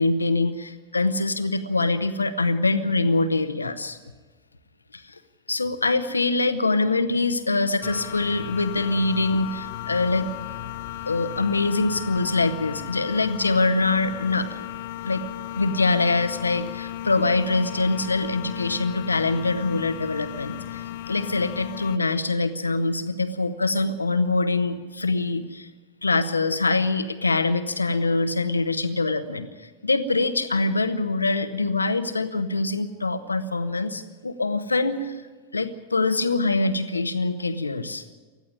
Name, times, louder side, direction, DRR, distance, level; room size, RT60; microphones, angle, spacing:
voice 1, 0.0-4.0 4.9-5.2 5.5-10.3 11.1-14.6 15.0-15.2 15.5-25.7 26.0-35.2 35.5-38.0, left 3 dB, 80° left, 10 dB, 1.1 m, -24 dB
sound 1, 7.8-22.0, left 13 dB, 50° left, 0.8 m, -35 dB
20.0 x 14.0 x 9.7 m, 1.4 s
figure-of-eight pair, 90°, 0 cm